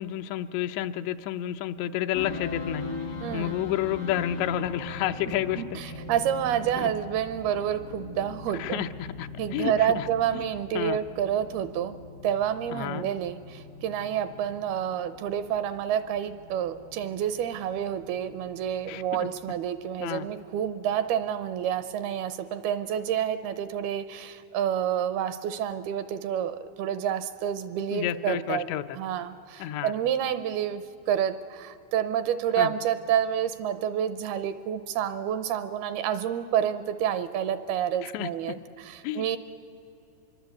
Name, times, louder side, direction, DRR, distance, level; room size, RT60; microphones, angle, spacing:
voice 1, 0.0-2.8 3.3-6.0 6.8-6.9 8.6-10.0 10.3-10.4 10.7-11.0 12.7-13.1 18.9-19.3 20.0-20.3 27.9-28.8 29.6-29.9 32.6-32.7 38.0-38.3 39.0-39.3, left 12 dB, 85° left, 9 dB, 3.0 m, -30 dB
sound 1, 2.1-22.1, left 3 dB, 60° left, 0.9 m, -42 dB
voice 2, 3.2-3.6 5.6-8.8 9.4-12.0 12.2-28.7 28.9-39.4, right 9 dB, 80° right, 13 dB, 2.4 m, -29 dB
25.5 x 22.5 x 8.4 m, 2.7 s
omnidirectional pair, 4.9 m